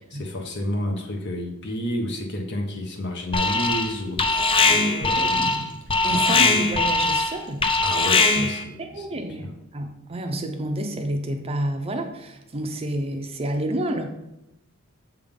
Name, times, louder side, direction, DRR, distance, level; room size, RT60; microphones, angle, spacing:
voice 1, 0.0-5.7 6.1-6.6 7.8-9.5, left 1 dB, 55° left, 2 dB, 1.1 m, -31 dB
Alarm, 3.3-8.6, left 3 dB, 25° left, 0.5 m, -21 dB
voice 2, 5.0-5.5 6.0-7.7 8.4-8.5 8.8-14.1, right 1 dB, 30° right, 5 dB, 0.6 m, -29 dB
7.1 x 3.7 x 5.3 m, 0.87 s
head